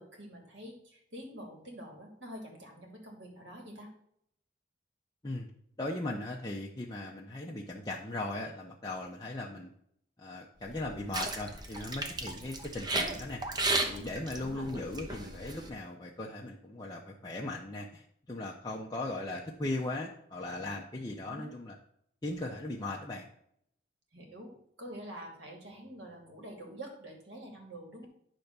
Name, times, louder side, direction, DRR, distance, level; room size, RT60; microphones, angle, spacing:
voice 1, 0.0-3.9 14.3-14.7 21.2-21.5 24.1-28.1, right 1 dB, 85° right, 1 dB, 2.6 m, -47 dB
voice 2, 5.8-9.7 10.2-13.4 13.8-21.8 22.2-23.3, left 2 dB, 20° left, -2 dB, 0.7 m, -38 dB
sound 1, 10.6-15.7, right 2 dB, 25° right, 0.8 m, -35 dB
10.5 x 3.5 x 6.7 m, 0.71 s
head